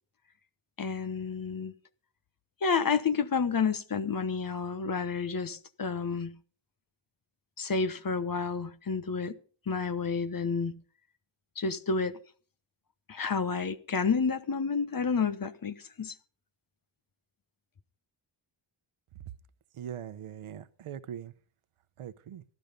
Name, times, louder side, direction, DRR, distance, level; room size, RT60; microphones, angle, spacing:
voice 1, 0.8-1.7 2.6-6.4 7.6-9.4 9.7-10.8 11.6-12.2 13.1-16.2, left 5 dB, 45° left, 1.1 m, -30 dB
voice 2, 19.7-21.3 22.0-22.4, right 9 dB, 90° right, 0.9 m, -41 dB
15.0 x 12.0 x 5.2 m
wide cardioid pair, 105°, 49 cm